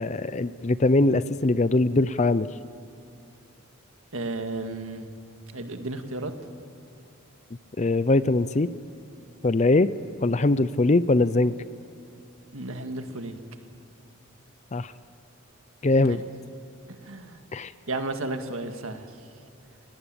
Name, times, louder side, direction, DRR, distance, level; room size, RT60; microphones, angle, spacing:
voice 1, 0.0-2.5 7.8-8.7 9.4-9.9 10.2-11.5 14.7-14.9 15.8-16.2 17.5-17.7, left 2 dB, 30° left, 15 dB, 0.5 m, -21 dB
voice 2, 4.1-5.1 5.5-6.3 12.5-13.4 16.0-16.2 17.0-17.4 17.9-19.1, right 2 dB, 70° right, 6 dB, 1.9 m, -33 dB
30.0 x 18.0 x 8.9 m, 2.5 s
head